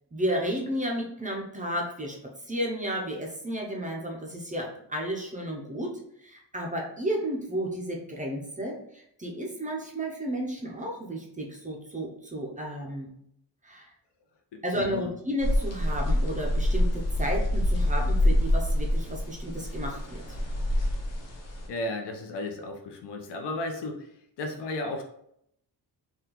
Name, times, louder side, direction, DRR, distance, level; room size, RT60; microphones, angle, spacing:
voice 1, 0.1-2.2 2.5-13.1 13.6-13.9 14.6-20.2, equal, 20° right, -1 dB, 0.4 m, -32 dB
voice 2, 14.5-15.1 21.7-24.1 24.4-25.0, left 2 dB, 80° left, 3 dB, 0.6 m, -34 dB
sound 1, 15.4-21.7, left 1 dB, 40° left, 0.6 m, -26 dB
3.6 x 2.2 x 2.9 m, 0.73 s
wide cardioid pair, 175°, 41 cm